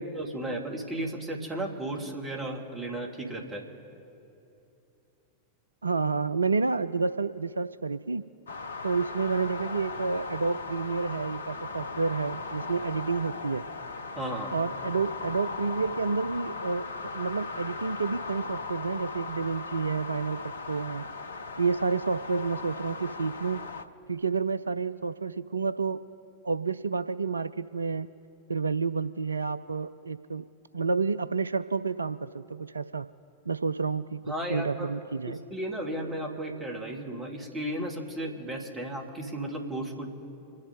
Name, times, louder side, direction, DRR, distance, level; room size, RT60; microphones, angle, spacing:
voice 1, 0.0-3.6 14.2-14.5 34.3-34.9 35.3-40.1, right 1 dB, 20° right, 0 dB, 2.6 m, -34 dB
voice 2, 5.8-8.2 8.8-13.6 14.5-16.8 17.1-21.0 21.6-23.6 24.1-26.0 26.4-28.1 28.5-30.4 30.7-33.1 33.5-35.4, right 4 dB, 75° right, 13 dB, 0.3 m, -29 dB
sound 1, 8.5-23.9, left 4 dB, 70° left, 0.8 m, -38 dB
27.5 x 10.5 x 3.9 m, 2.8 s
figure-of-eight pair, 90°, 0 cm